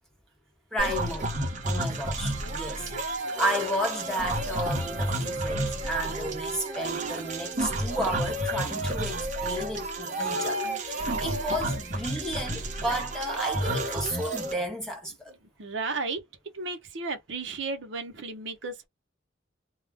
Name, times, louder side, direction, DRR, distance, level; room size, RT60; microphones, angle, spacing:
voice 1, 0.7-1.4 1.7-15.4, equal, 5° left, 0.8 m, -33 dB
sound 1, 0.8-14.5, right 1 dB, 40° right, 0.8 m, -31 dB
voice 2, 15.6-16.2 16.5-18.9, right 3 dB, 70° right, 0.7 m, -34 dB
2.3 x 2.0 x 3.4 m
head